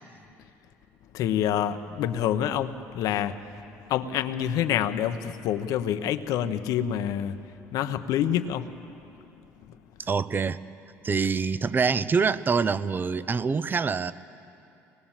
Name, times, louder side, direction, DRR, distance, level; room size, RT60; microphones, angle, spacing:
voice 1, 1.1-3.4 3.9-7.4 7.7-8.7, left 10 dB, 70° left, 9 dB, 1.0 m, -27 dB
voice 2, 10.0-10.6 11.0-14.1, right 5 dB, 30° right, 16 dB, 0.8 m, -25 dB
24.5 x 20.0 x 7.4 m, 2.8 s
supercardioid pair, 80°, 6 cm